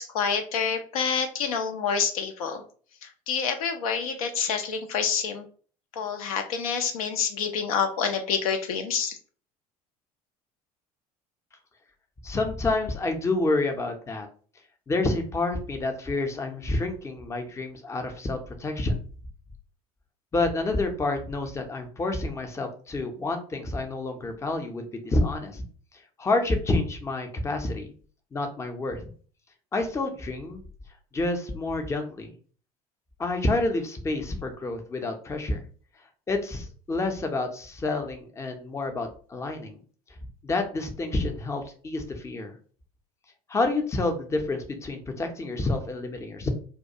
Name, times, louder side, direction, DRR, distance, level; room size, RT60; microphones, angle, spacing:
voice 1, 0.0-2.6 3.0-5.4 5.9-9.2, left 6 dB, 70° left, 6 dB, 0.4 m, -27 dB
voice 2, 12.2-14.3 14.9-19.0 20.3-25.6 26.2-27.9 28.3-29.0 29.7-30.6 31.1-32.3 33.2-35.6 36.3-39.8 40.4-42.5 43.5-46.5, left 2 dB, 15° left, 5 dB, 0.5 m, -28 dB
2.3 x 2.2 x 2.7 m, 0.42 s
figure-of-eight pair, 65°, 19 cm